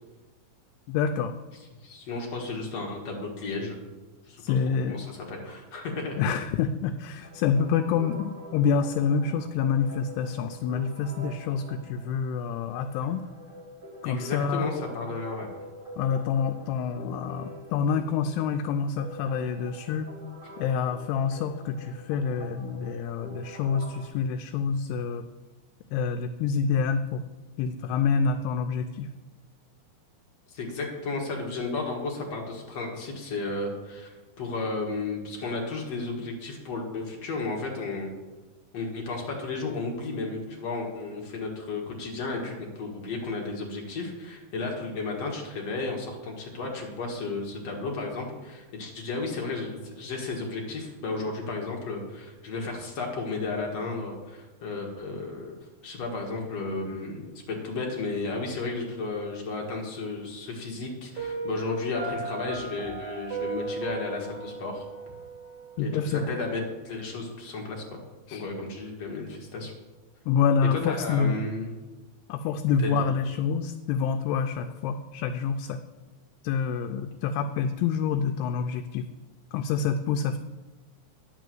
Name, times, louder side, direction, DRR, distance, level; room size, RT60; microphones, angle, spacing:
voice 1, 0.9-1.3 4.4-5.0 6.2-13.2 14.0-14.7 16.0-20.1 20.6-25.2 25.9-27.2 27.6-29.1 65.8-66.2 68.3-68.4 70.3-71.4 72.3-75.8 76.4-79.0 79.5-80.4, left 6 dB, 85° left, 6 dB, 2.6 m, -27 dB
voice 2, 1.8-3.9 4.3-4.4 4.9-6.2 14.0-15.5 30.5-38.1 38.7-55.6 55.8-64.9 65.8-68.0 68.3-69.7 70.7-71.7 72.8-72.9, left 3 dB, 50° left, -1 dB, 2.2 m, -33 dB
sound 1, 7.2-24.1, right 1 dB, 20° right, 3.3 m, -45 dB
Piano, 61.2-66.1, right 3 dB, 50° right, 3.2 m, -36 dB
10.5 x 6.2 x 7.7 m, 1.2 s
omnidirectional pair, 4.6 m